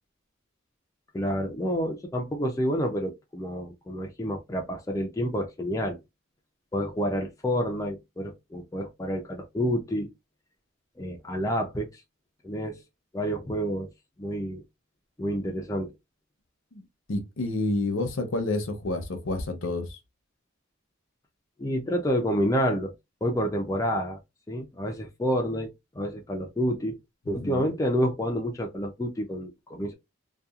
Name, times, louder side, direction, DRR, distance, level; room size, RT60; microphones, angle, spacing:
voice 1, 1.1-6.0 6.7-10.1 11.0-12.0 12.4-12.8 13.1-13.9 14.2-14.6 15.2-15.9 21.6-22.9 23.2-24.2 24.5-25.7 25.9-27.0 27.3-29.9, equal, 15° left, 0.4 m, -29 dB
voice 2, 17.1-20.0 27.3-27.7, left 2 dB, 80° left, 0.7 m, -29 dB
2.8 x 2.3 x 2.4 m
head